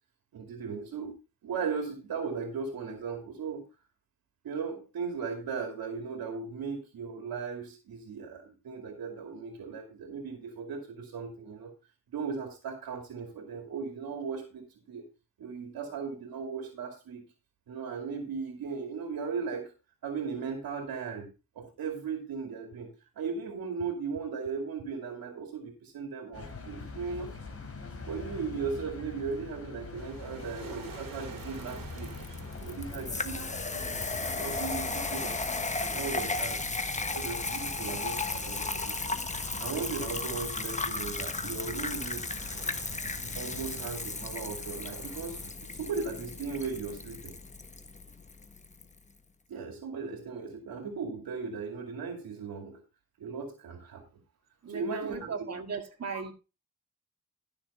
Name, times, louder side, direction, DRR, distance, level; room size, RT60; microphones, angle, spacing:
voice 1, 0.3-1.2 1.4-3.6 4.4-11.7 12.1-15.0 15.4-17.3 17.7-19.7 20.0-21.3 21.6-27.3 28.1-32.2 32.6-35.4 35.8-36.8 37.1-42.3 43.3-47.3 49.5-52.8 53.2-54.0 54.7-55.3, right 5 dB, 90° right, 2.4 m, -37 dB
sound 1, 26.3-43.9, left 4 dB, 40° left, 3.2 m, -44 dB
sound 2, 29.9-45.5, right 6 dB, 70° right, 2.6 m, -49 dB
sound 3, 30.9-48.9, left 3 dB, 20° left, 1.1 m, -35 dB
voice 2, 54.6-56.3, right 5 dB, 45° right, 1.8 m, -37 dB
12.5 x 6.8 x 4.1 m
cardioid pair, 100°, 35 cm